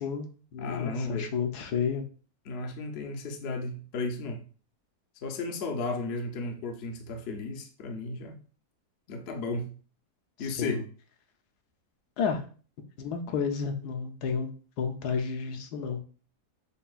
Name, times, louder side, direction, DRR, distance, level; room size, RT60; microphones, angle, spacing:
voice 1, 0.0-2.0 10.4-10.8 12.2-12.4 13.0-14.5 14.8-16.0, left 6 dB, 80° left, 1.2 m, -31 dB
voice 2, 0.6-1.3 2.5-4.4 5.2-8.4 9.1-9.7 10.4-10.8, left 3 dB, 60° left, 0.7 m, -34 dB
6.6 x 2.3 x 2.4 m
omnidirectional pair, 1.7 m